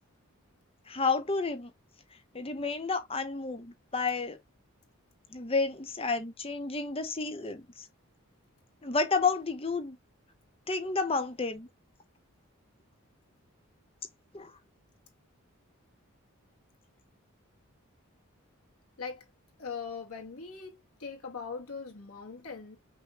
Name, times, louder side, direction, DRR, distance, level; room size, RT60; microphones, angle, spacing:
voice 1, 0.9-1.7 2.3-4.4 5.3-7.9 8.8-10.0 10.7-11.7 14.3-14.5, left 4 dB, 25° left, 0.7 m, -31 dB
voice 2, 19.6-22.8, left 5 dB, 85° left, 2.1 m, -41 dB
5.9 x 2.8 x 2.9 m
head